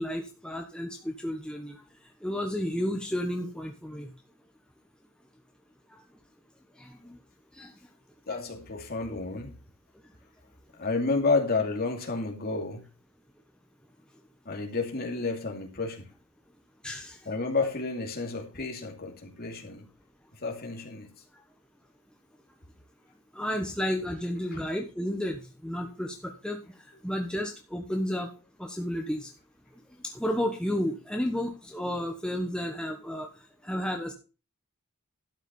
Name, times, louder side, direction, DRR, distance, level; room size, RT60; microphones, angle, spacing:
voice 1, 0.0-1.8 2.2-4.1 5.9-6.0 6.8-7.2 7.5-7.7 16.8-17.3 23.3-28.3 28.6-29.3 30.0-34.1, equal, 5° left, 1.1 m, -32 dB
voice 2, 8.3-9.5 10.8-12.8 14.4-16.0 17.3-19.9 20.4-21.1, left 3 dB, 45° left, 2.6 m, -30 dB
12.0 x 6.2 x 5.3 m
head